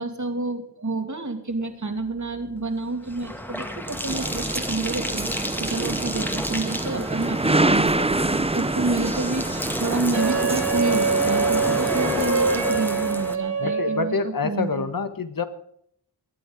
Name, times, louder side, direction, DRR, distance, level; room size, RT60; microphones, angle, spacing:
voice 1, 0.0-14.9, right 3 dB, 40° right, 5 dB, 2.7 m, -29 dB
Bathtub (filling or washing), 2.0-13.4, equal, 5° left, 2.0 m, -31 dB
sound 1, 4.1-12.3, right 2 dB, 15° right, 0.8 m, -26 dB
Wind instrument woodwind instrument, 10.1-14.2, right 4 dB, 85° right, 6.5 m, -24 dB
voice 2, 13.6-15.5, left 4 dB, 50° left, 10 dB, 1.6 m, -26 dB
21.5 x 8.6 x 5.2 m, 0.69 s
cardioid pair, 50°, 43 cm